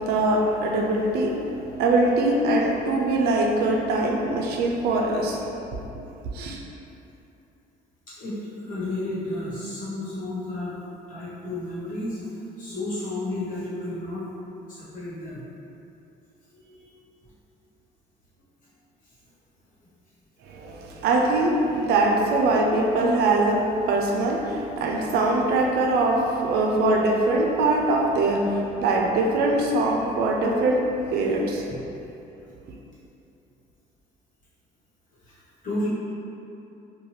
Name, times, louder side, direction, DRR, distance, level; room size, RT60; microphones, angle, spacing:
voice 1, 0.0-5.5 6.3-6.6 20.4-31.7, right 2 dB, 70° right, 0 dB, 0.4 m, -22 dB
voice 2, 8.1-10.8 11.1-12.3 12.6-14.3 14.6-15.4 16.5-17.0 31.7-31.9 35.2-35.9, left 1 dB, 50° left, -10 dB, 1.2 m, -32 dB
2.7 x 2.2 x 3.1 m, 2.9 s
cardioid pair, 110°, 17 cm